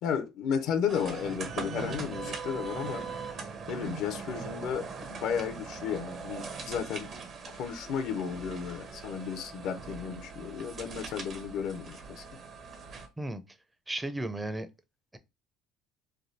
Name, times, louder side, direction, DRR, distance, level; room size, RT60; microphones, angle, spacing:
voice 1, 0.0-3.0 3.7-7.1 7.5-12.2, left 7 dB, 70° left, 0.5 m, -33 dB
sound 1, 0.9-13.1, right 5 dB, 50° right, 0.8 m, -41 dB
voice 2, 13.9-14.7, right 1 dB, 15° right, 0.5 m, -34 dB
3.3 x 2.3 x 2.6 m
supercardioid pair, 85°, 0 cm